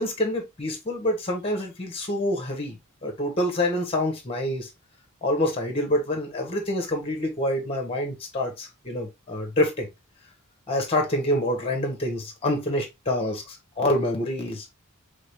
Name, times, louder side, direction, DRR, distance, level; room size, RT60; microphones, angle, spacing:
voice 1, 0.0-2.8 3.0-4.7 5.2-9.9 10.7-14.7, left 1 dB, 25° left, 1.4 m, -26 dB
3.9 x 3.6 x 3.4 m
head